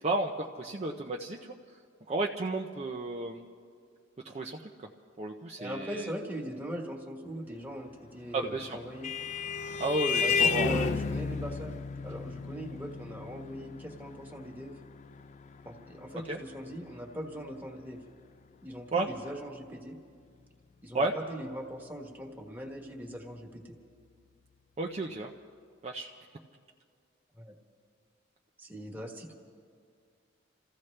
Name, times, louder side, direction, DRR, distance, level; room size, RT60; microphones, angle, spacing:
voice 1, 0.0-1.5 2.1-3.5 4.2-4.9 5.2-6.1 8.3-8.8 9.8-10.9 16.3-16.4 18.9-19.1 20.9-21.1 24.8-25.3 25.8-26.1, right 2 dB, 35° right, 1 dB, 0.6 m, -32 dB
voice 2, 5.6-9.1 10.2-14.8 15.6-18.0 18.6-19.9 20.8-23.8 27.3-27.5 28.6-29.3, equal, 10° right, 0 dB, 1.4 m, -40 dB
Vehicle horn car horn honking, 8.4-17.4, left 5 dB, 35° left, 0.4 m, -33 dB
28.5 x 15.0 x 3.3 m, 2.2 s
head